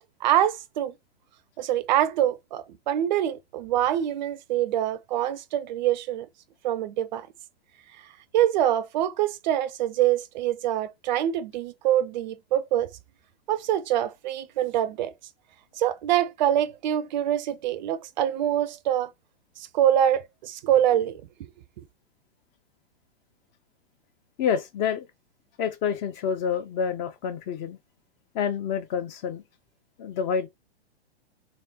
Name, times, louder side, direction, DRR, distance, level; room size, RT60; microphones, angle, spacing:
voice 1, 0.2-0.9 1.6-6.3 6.6-7.3 8.3-12.9 13.5-15.1 15.8-19.1 19.6-21.2, right 11 dB, 45° right, 0.5 m, -25 dB
voice 2, 24.4-25.1 25.6-27.8 28.3-29.4 30.0-30.5, left 7 dB, 30° left, 0.6 m, -28 dB
3.5 x 3.2 x 2.8 m
hypercardioid pair, 115°, 33 cm